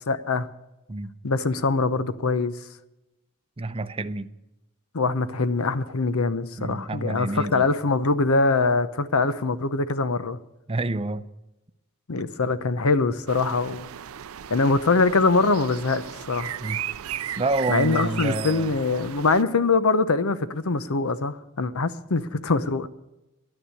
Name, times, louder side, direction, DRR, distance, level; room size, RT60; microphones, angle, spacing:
voice 1, 0.1-0.5 1.2-2.6 4.9-10.4 12.1-13.9 14.5-16.5 17.7-22.9, left 3 dB, 80° left, 0.8 m, -23 dB
voice 2, 3.6-4.3 6.6-7.7 10.7-11.2 16.6-16.8 17.4-18.8, right 2 dB, 25° right, 0.6 m, -28 dB
sound 1, 13.3-19.4, right 11 dB, 80° right, 0.5 m, -36 dB
11.5 x 10.0 x 8.8 m
head